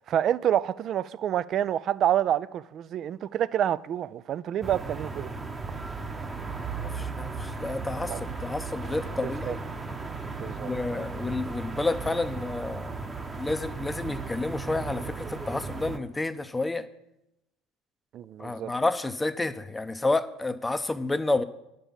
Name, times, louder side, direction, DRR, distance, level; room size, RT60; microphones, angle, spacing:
voice 1, 0.1-5.3 8.1-8.2 9.2-9.6 10.4-11.0 18.1-18.7, right 10 dB, 50° right, 0.3 m, -28 dB
sound 1, 4.6-16.0, right 4 dB, 20° right, 0.9 m, -36 dB
voice 2, 6.8-9.6 10.6-12.9 13.4-16.8 18.4-21.4, left 2 dB, 15° left, 0.6 m, -30 dB
9.9 x 5.4 x 7.2 m
hypercardioid pair, 80°, 0 cm